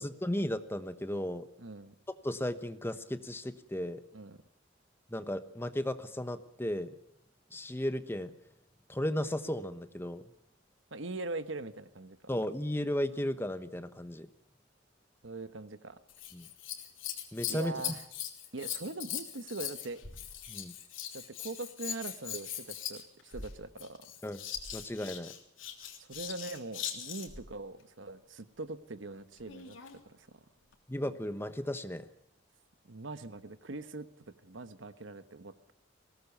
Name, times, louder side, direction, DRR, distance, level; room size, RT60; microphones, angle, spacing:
voice 1, 0.0-1.5 2.2-4.0 5.1-6.9 7.5-8.3 8.9-10.2 12.3-14.3 16.3-16.5 17.3-17.7 20.5-20.7 24.2-24.4 24.7-25.3 30.9-32.1, left 1 dB, 10° left, 10 dB, 1.1 m, -35 dB
voice 2, 1.6-1.9 4.1-4.4 10.9-12.3 15.2-16.0 17.5-18.0 18.5-20.0 21.1-24.1 26.0-30.4 32.9-34.1 34.4-35.5, right 2 dB, 75° right, 11 dB, 1.2 m, -42 dB
Scissors, 16.1-27.5 29.4-30.0 30.7-30.8, left 9 dB, 90° left, 3.4 m, -41 dB
21.0 x 18.0 x 7.0 m, 0.79 s
head